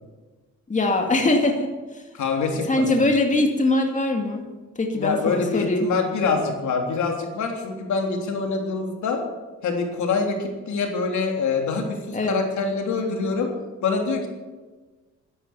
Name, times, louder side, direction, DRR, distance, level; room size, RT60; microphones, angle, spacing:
voice 1, 0.7-1.7 2.7-4.5 4.8-5.9 12.1-12.4, left 2 dB, 25° left, 3 dB, 2.4 m, -22 dB
voice 2, 2.1-2.8 4.9-9.2 9.6-13.5 13.8-14.3, left 4 dB, 70° left, 2 dB, 3.4 m, -25 dB
13.0 x 11.5 x 8.2 m, 1.3 s
cardioid pair, 90°, 30 cm